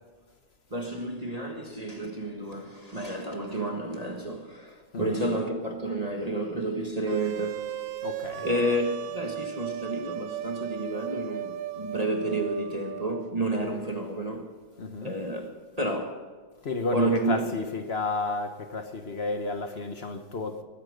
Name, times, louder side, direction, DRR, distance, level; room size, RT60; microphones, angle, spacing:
voice 1, 0.7-7.7 8.4-14.5 15.0-16.2 16.9-17.5, right 1 dB, 20° right, 1.4 m, -30 dB
sound 1, 7.1-13.2, right 10 dB, 75° right, 1.4 m, -36 dB
voice 2, 8.0-8.5 13.6-13.8 14.8-15.1 16.6-20.6, left 3 dB, 45° left, 0.8 m, -32 dB
20.0 x 8.8 x 6.6 m
omnidirectional pair, 2.2 m